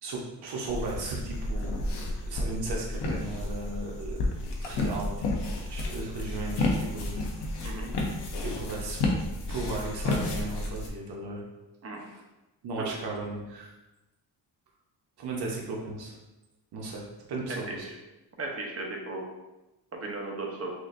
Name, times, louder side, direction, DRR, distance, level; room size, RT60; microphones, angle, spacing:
voice 1, 0.0-1.7 2.3-4.2 4.6-5.1 5.6-7.6 8.4-9.0 9.5-11.4 12.0-12.2 12.6-13.7 15.2-16.1 16.7-17.9, right 3 dB, 75° right, -2 dB, 0.9 m, -36 dB
sound 1, 0.7-10.9, left 2 dB, 90° left, 0.8 m, -31 dB
voice 2, 18.4-19.3 19.9-20.7, right 2 dB, 35° right, 0 dB, 0.8 m, -36 dB
6.1 x 2.5 x 2.5 m, 1.0 s
wide cardioid pair, 140°, 40 cm